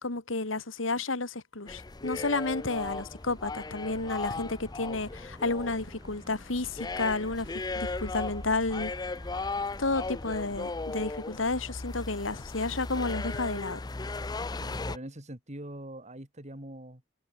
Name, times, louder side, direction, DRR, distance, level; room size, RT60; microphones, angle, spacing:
voice 1, 0.0-8.9 9.8-13.8, left 3 dB, 85° left, 2.4 m, -31 dB
sound 1, 1.7-15.0, left 3 dB, 20° left, 0.5 m, -37 dB
sound 2, 2.5-10.6, equal, 20° right, 2.8 m, -47 dB
voice 2, 14.6-17.1, right 1 dB, 35° right, 3.8 m, -43 dB
head